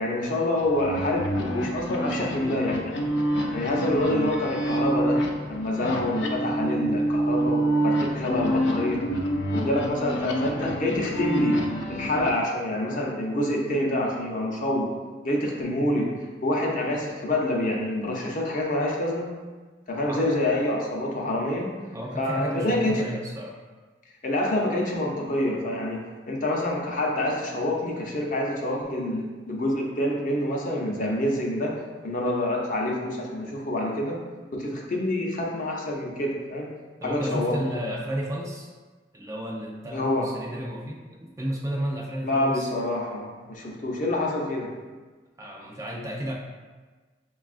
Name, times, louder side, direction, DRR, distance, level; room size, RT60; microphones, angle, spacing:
voice 1, 0.0-3.0 3.5-5.2 5.5-9.0 9.5-11.6 11.9-14.9 15.2-19.3 19.9-21.7 22.2-23.1 24.2-31.7 32.0-34.2 34.5-36.7 37.0-37.6 39.9-40.3 42.2-44.7, left 1 dB, 45° left, -1 dB, 0.6 m, -27 dB
sound 1, 0.6-12.3, right 1 dB, 90° left, 0.5 m, -27 dB
voice 2, 21.9-23.6 37.0-38.7 39.1-42.7 45.4-46.3, equal, 15° right, -1 dB, 0.4 m, -32 dB
6.0 x 2.3 x 2.4 m, 1.3 s
head